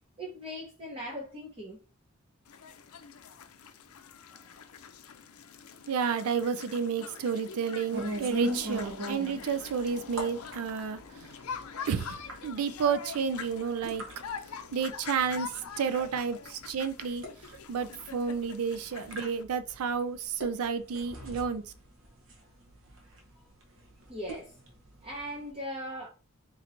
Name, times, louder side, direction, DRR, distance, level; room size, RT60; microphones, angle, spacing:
voice 1, 0.2-1.8 4.3-4.5 24.1-24.5 25.0-26.1, equal, 25° right, 0.8 m, -39 dB
sound 1, 2.5-19.4, left 6 dB, 85° left, 0.5 m, -45 dB
voice 2, 5.9-11.4 11.9-12.2 12.4-14.0 14.7-17.2 17.7-21.6, right 6 dB, 85° right, 0.4 m, -31 dB
sound 2, 7.9-25.5, equal, 65° right, 1.0 m, -43 dB
4.4 x 3.1 x 2.5 m
head